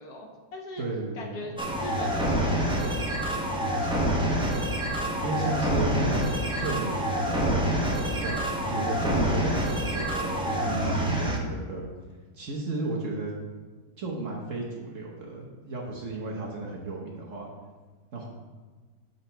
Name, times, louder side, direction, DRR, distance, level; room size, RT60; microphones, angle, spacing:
voice 1, 0.0-0.9 1.1-1.5 1.8-3.2 3.7-4.4, left 1 dB, 65° left, 1 dB, 1.4 m, -41 dB
voice 2, 0.8-1.5 5.2-6.3 6.6-7.6 7.9-8.4 8.6-11.9 12.3-13.4 14.0-17.5 18.1-18.3, right 2 dB, 50° right, -2 dB, 1.1 m, -33 dB
sound 1, 1.6-11.4, equal, 10° right, 0.3 m, -27 dB
7.6 x 4.0 x 4.4 m, 1.4 s
omnidirectional pair, 1.9 m